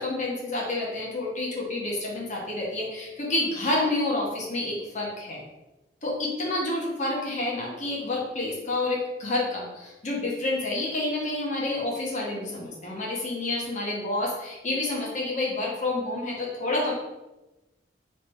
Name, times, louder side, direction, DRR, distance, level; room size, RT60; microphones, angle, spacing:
voice 1, 0.0-5.4 6.0-16.9, left 2 dB, 45° left, -4 dB, 1.0 m, -29 dB
3.3 x 3.2 x 4.6 m, 1.0 s
head